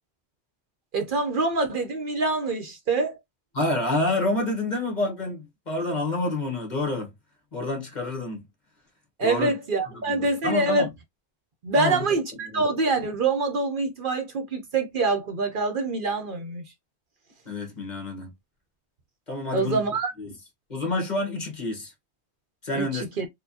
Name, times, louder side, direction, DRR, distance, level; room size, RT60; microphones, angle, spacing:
voice 1, 0.9-3.2 9.2-10.9 11.6-16.6 19.5-20.1 22.8-23.3, right 3 dB, 55° right, 0.8 m, -25 dB
voice 2, 3.5-7.1 7.5-8.4 9.2-9.5 9.9-10.9 11.8-12.0 12.5-12.6 17.4-18.3 19.3-19.8 20.2-20.3 20.7-21.9 22.6-23.0, left 2 dB, 45° left, 1.3 m, -28 dB
4.4 x 2.3 x 2.6 m
omnidirectional pair, 1.1 m